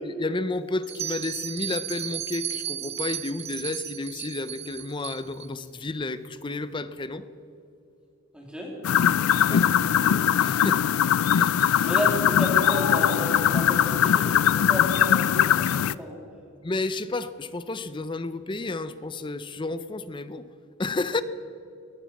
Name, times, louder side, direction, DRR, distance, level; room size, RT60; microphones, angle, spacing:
voice 1, 0.0-7.3 9.4-10.8 11.3-11.9 16.6-20.4 20.8-21.2, left 2 dB, 25° left, 13 dB, 0.5 m, -32 dB
Bell, 0.8-5.5, right 10 dB, 30° right, 0.5 m, -34 dB
voice 2, 8.3-8.8 9.5-9.6 9.9-10.0 11.8-16.2, equal, 5° right, -1 dB, 2.5 m, -32 dB
sound 1, 8.8-15.9, left 9 dB, 90° left, 0.3 m, -21 dB
19.5 x 15.0 x 4.2 m, 2.8 s
head